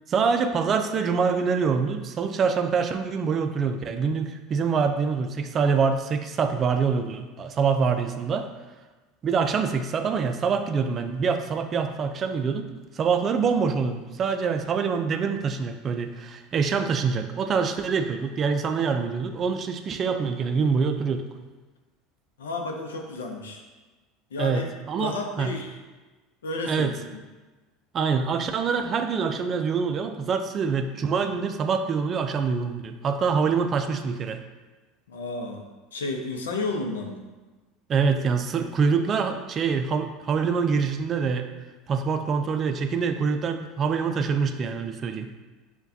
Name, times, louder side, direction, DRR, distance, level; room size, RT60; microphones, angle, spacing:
voice 1, 0.1-8.5 9.2-12.6 12.9-21.3 24.4-25.5 26.7-27.0 27.9-34.4 37.9-41.5 41.9-45.3, right 5 dB, 40° right, 7 dB, 0.4 m, -25 dB
voice 2, 22.4-23.6 24.3-24.7 24.9-25.7 26.4-26.9 35.1-35.6 35.9-37.2, left 2 dB, 90° left, 2 dB, 0.6 m, -31 dB
6.7 x 2.2 x 2.7 m, 1.2 s
hypercardioid pair, 85°, 0 cm